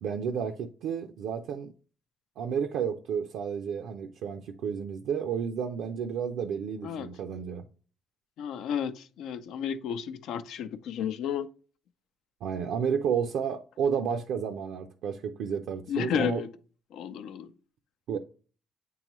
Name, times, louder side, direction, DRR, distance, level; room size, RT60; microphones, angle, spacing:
voice 1, 0.0-1.7 2.4-7.6 12.4-16.4 18.1-18.2, right 7 dB, 85° right, 0.5 m, -31 dB
voice 2, 6.8-7.1 8.4-11.5 15.9-16.5 16.9-17.5, left 8 dB, 85° left, 0.5 m, -32 dB
8.2 x 3.8 x 3.0 m
cardioid pair, 90°, 0 cm